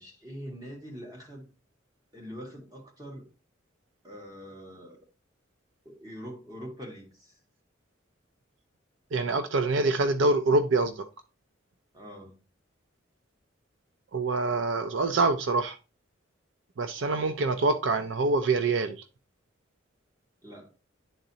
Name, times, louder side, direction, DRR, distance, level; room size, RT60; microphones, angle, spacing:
voice 1, 0.0-1.5 2.1-3.3 4.0-5.0 5.9-7.4 11.9-12.4 20.4-20.7, equal, 20° right, 1.7 m, -43 dB
voice 2, 9.1-11.1 14.1-15.8 16.8-19.0, right 3 dB, 70° right, 0.5 m, -25 dB
10.5 x 3.9 x 2.8 m
head